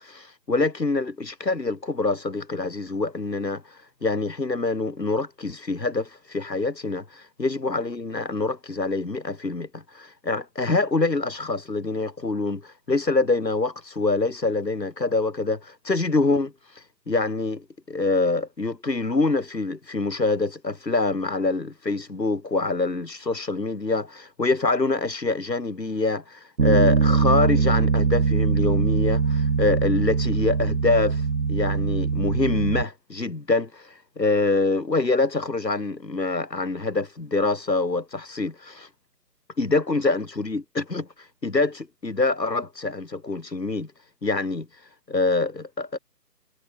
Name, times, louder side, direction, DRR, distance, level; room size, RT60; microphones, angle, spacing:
voice 1, 0.0-38.9 39.6-46.0, left 3 dB, 85° left, 7.7 m, -25 dB
Bass guitar, 26.6-32.8, right 5 dB, 55° right, 6.1 m, -22 dB
figure-of-eight pair, 160°, 48 cm